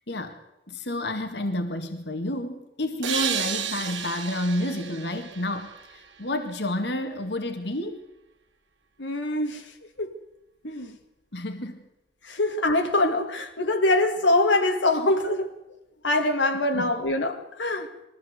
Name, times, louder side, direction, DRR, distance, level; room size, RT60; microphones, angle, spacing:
voice 1, 0.1-0.4 0.7-8.0 11.3-11.8 12.3-12.4 16.7-16.9, left 1 dB, 65° left, 1.9 m, -30 dB
sound 1, 3.0-6.5, right 8 dB, 80° right, 2.0 m, -32 dB
voice 2, 9.0-9.6 10.0-10.1 10.6-11.0 12.3-15.5 16.0-17.9, left 2 dB, 80° left, 2.0 m, -24 dB
22.0 x 15.0 x 8.1 m
head